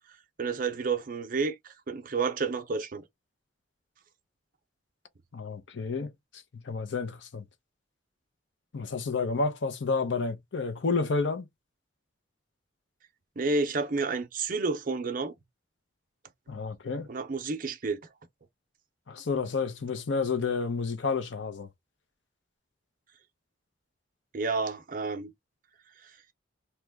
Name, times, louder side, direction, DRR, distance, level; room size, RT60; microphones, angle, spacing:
voice 1, 0.4-3.0 13.4-15.3 17.1-18.0 24.3-25.3, right 4 dB, 45° right, 0.6 m, -30 dB
voice 2, 5.3-6.1 6.6-7.4 8.7-11.5 16.5-17.1 19.1-21.7, left 4 dB, 75° left, 0.6 m, -30 dB
3.0 x 2.2 x 3.4 m
head